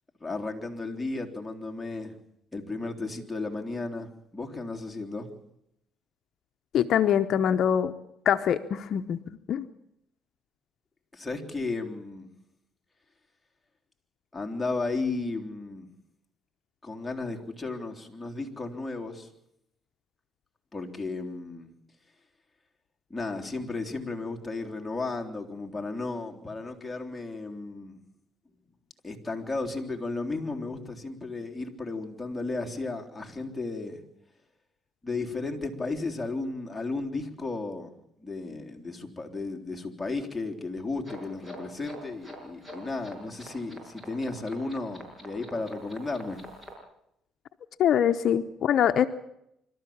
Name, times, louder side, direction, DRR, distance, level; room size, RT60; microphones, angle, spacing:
voice 1, 0.2-2.1 2.5-5.3 11.1-12.3 14.3-15.9 16.8-19.3 20.7-21.7 23.1-28.0 29.0-34.0 35.0-37.9 38.2-46.4, left 3 dB, 10° left, 1 dB, 3.5 m, -34 dB
voice 2, 6.7-7.9 8.2-9.2 9.5-9.6 47.8-49.1, left 9 dB, 60° left, 8 dB, 0.9 m, -23 dB
sound 1, 41.0-46.7, equal, 20° right, 6.6 m, -45 dB
25.5 x 13.5 x 8.7 m, 0.78 s
cardioid pair, 105°, 0 cm